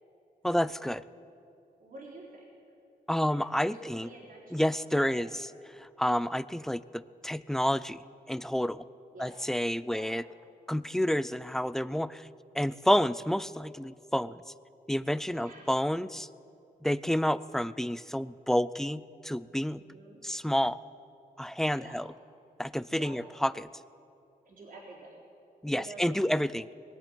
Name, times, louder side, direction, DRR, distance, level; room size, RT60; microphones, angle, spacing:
voice 1, 0.4-1.0 3.1-4.1 4.5-5.5 5.7-8.8 9.2-10.2 10.7-12.3 12.5-14.4 14.9-16.3 16.8-19.8 20.2-20.8 21.4-22.1 22.6-23.7 25.6-26.7, equal, 5° left, 17 dB, 0.3 m, -29 dB
voice 2, 1.8-2.5 3.2-5.3 9.1-9.3 9.9-10.1 15.3-15.7 19.7-20.2 21.7-22.0 22.9-23.2 24.4-25.2 25.7-26.5, right 2 dB, 60° right, -3 dB, 4.0 m, -48 dB
20.5 x 7.6 x 9.0 m, 2.7 s
wide cardioid pair, 110°, 16 cm